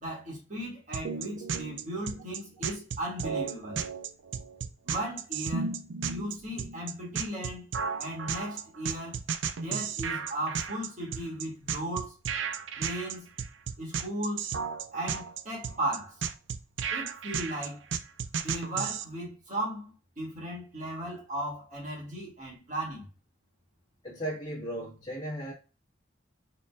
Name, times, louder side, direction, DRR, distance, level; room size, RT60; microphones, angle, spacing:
voice 1, 0.0-3.8 4.8-5.8 6.1-7.7 8.0-9.2 9.6-12.1 12.8-13.3 13.8-14.5 14.9-16.2 16.9-17.8 18.4-23.1, right 1 dB, 40° right, 2.1 m, -36 dB
sound 1, 0.9-19.1, right 6 dB, 70° right, 0.4 m, -34 dB
voice 2, 24.0-25.5, right 1 dB, 25° left, 1.4 m, -36 dB
4.2 x 3.9 x 2.3 m
head